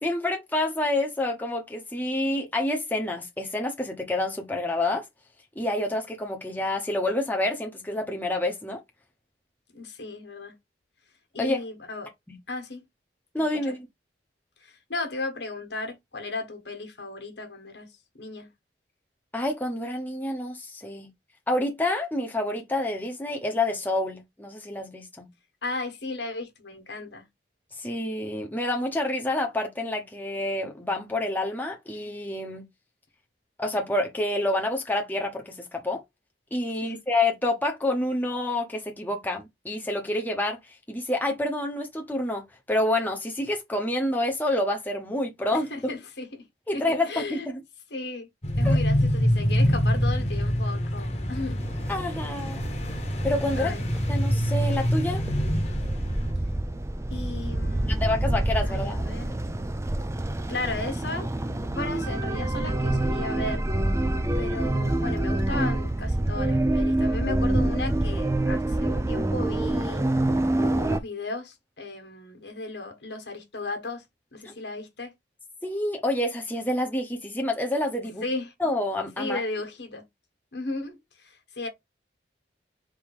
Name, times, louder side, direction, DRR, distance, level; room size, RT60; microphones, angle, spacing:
voice 1, 0.0-5.0 5.6-8.8 11.4-11.6 12.3-12.4 13.3-13.8 19.3-21.1 21.5-25.3 27.8-32.6 33.6-36.0 36.5-45.7 46.7-47.6 48.6-48.8 51.9-52.7 53.2-53.7 54.1-55.2 57.9-59.1 74.4-74.5 75.6-78.3 78.6-79.4, left 1 dB, 10° left, 0.9 m, -28 dB
voice 2, 9.7-10.5 11.3-12.1 12.5-12.8 13.4-13.7 14.6-17.9 18.1-18.5 25.6-27.2 36.8-37.0 45.7-46.5 46.7-47.5 47.9-48.3 48.6-51.7 53.6-53.9 57.1-58.1 58.6-59.4 60.5-61.3 61.7-63.6 64.4-70.1 70.6-74.0 74.3-75.1 78.2-78.5 79.2-80.0 80.5-81.7, left 2 dB, 70° left, 1.5 m, -35 dB
sound 1, 48.4-56.3, equal, 40° left, 1.1 m, -25 dB
sound 2, 51.6-71.0, right 1 dB, 15° right, 0.4 m, -27 dB
3.6 x 2.8 x 4.8 m
head